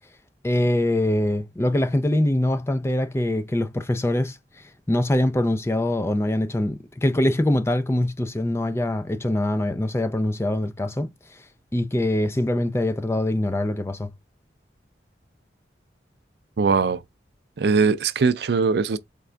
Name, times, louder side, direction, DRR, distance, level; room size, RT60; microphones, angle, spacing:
voice 1, 0.4-11.4 11.7-14.1, left 1 dB, 15° left, 0.4 m, -23 dB
voice 2, 16.6-17.0 17.6-19.0, right 4 dB, 65° right, 0.4 m, -20 dB
3.8 x 3.5 x 3.3 m
head